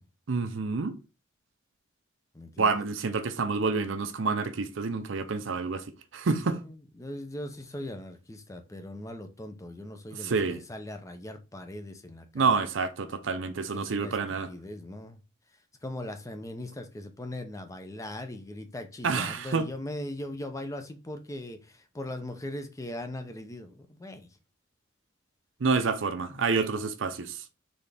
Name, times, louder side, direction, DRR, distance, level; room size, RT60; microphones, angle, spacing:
voice 1, 0.3-1.0 2.6-5.8 6.1-6.6 10.2-10.6 12.3-14.5 19.0-19.7 25.6-27.4, right 4 dB, 70° right, 0.6 m, -28 dB
voice 2, 2.3-2.7 6.5-12.5 13.7-14.2 14.5-15.2 15.8-24.4 26.3-26.5, left 1 dB, 15° left, 0.5 m, -40 dB
4.1 x 3.3 x 3.4 m
head